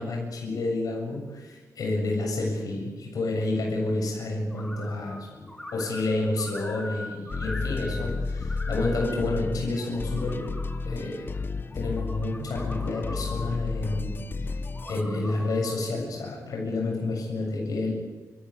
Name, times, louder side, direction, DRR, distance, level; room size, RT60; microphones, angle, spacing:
voice 1, 0.0-10.5 10.8-11.4 11.7-14.6 14.9-17.9, left 2 dB, 80° left, -1 dB, 7.4 m, -29 dB
sound 1, 4.5-5.2 5.5-8.1 8.4-9.2 9.8-10.8 11.7-13.5 14.6-15.8, left 1 dB, 10° left, 4.7 m, -42 dB
sound 2, 7.3-15.0, left 4 dB, 35° left, 0.8 m, -32 dB
29.5 x 15.0 x 9.9 m, 1.3 s
wide cardioid pair, 135°, 6 cm